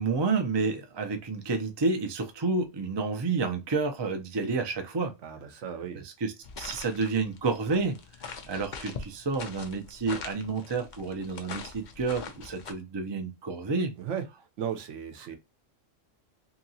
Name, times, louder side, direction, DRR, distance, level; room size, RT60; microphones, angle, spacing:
voice 1, 0.0-5.1 5.9-8.0 8.2-13.9, right 4 dB, 40° right, 0.4 m, -30 dB
voice 2, 5.2-6.0 14.0-14.2 14.6-15.4, right 8 dB, 75° right, 1.0 m, -35 dB
sound 1, 6.4-12.7, left 5 dB, 50° left, 0.6 m, -43 dB
2.9 x 2.8 x 2.6 m
omnidirectional pair, 1.3 m